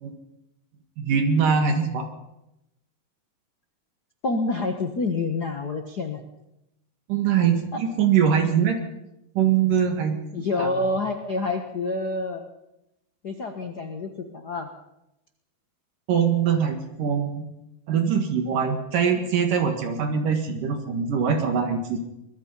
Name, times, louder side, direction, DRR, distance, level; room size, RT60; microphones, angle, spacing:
voice 1, 1.0-2.0 7.1-8.8 9.3-10.2 10.6-10.8 16.1-17.5 17.9-22.0, right 7 dB, 65° right, 6 dB, 3.3 m, -23 dB
voice 2, 4.2-6.2 7.7-7.8 10.3-12.5 13.2-14.7, left 3 dB, 80° left, 6 dB, 0.8 m, -27 dB
24.5 x 21.0 x 5.6 m, 0.88 s
omnidirectional pair, 4.4 m